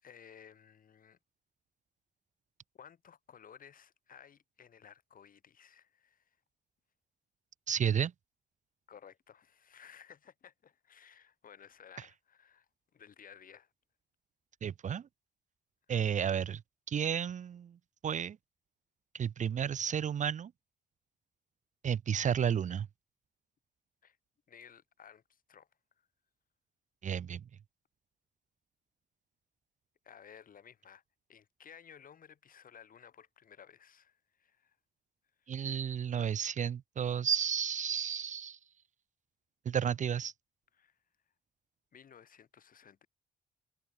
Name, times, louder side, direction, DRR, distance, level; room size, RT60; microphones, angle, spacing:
voice 1, 0.0-1.2 2.7-6.4 8.9-13.7 24.0-24.2 24.5-25.7 26.0-26.1 30.0-31.0 31.3-34.8 35.4-35.6 40.7-41.0 41.9-43.1, left 8 dB, 55° left, 4.3 m, -56 dB
voice 2, 7.7-8.1 14.6-15.1 15.9-16.6 16.9-17.8 18.0-18.4 19.1-20.5 21.8-22.9 27.0-27.4 35.5-38.6 39.7-40.3, right 8 dB, 45° right, 0.7 m, -32 dB
cardioid pair, 120°, 17 cm